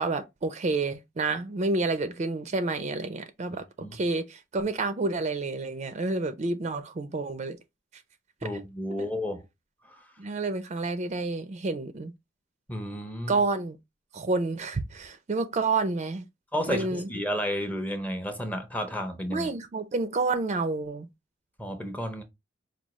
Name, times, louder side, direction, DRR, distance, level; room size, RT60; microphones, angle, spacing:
voice 1, 0.0-3.7 3.9-7.6 8.5-8.6 10.2-12.1 13.3-13.8 14.1-16.2 16.7-17.1 19.3-21.1, right 3 dB, 35° right, 0.4 m, -29 dB
voice 2, 8.4-9.4 9.9-10.0 12.7-13.4 16.5-19.5 21.6-22.2, equal, 10° left, 0.6 m, -32 dB
4.7 x 2.3 x 2.9 m
head